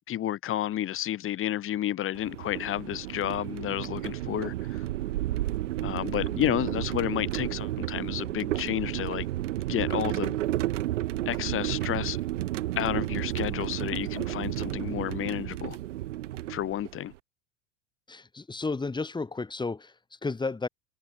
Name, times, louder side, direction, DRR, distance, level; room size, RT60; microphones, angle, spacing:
voice 1, 0.1-4.8 5.8-9.3 9.7-10.4 11.3-12.2 12.8-15.8 16.5-17.1, left 12 dB, 30° left, 2.8 m, -31 dB
sound 1, 2.1-17.1, right 15 dB, 60° right, 7.1 m, -32 dB
voice 2, 18.1-20.7, left 3 dB, 10° left, 5.2 m, -33 dB
figure-of-eight pair, 85°, 41 cm